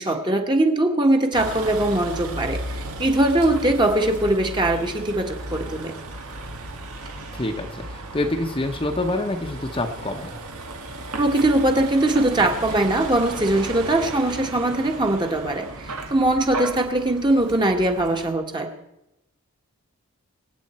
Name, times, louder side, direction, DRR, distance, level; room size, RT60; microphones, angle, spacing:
voice 1, 0.0-5.9 11.2-18.7, right 1 dB, 20° right, 3 dB, 1.5 m, -21 dB
Vehicle, 1.3-18.3, right 2 dB, 90° right, 1.8 m, -35 dB
voice 2, 7.3-10.4, left 2 dB, 25° left, 4 dB, 1.0 m, -27 dB
25.5 x 8.9 x 4.4 m, 0.89 s
head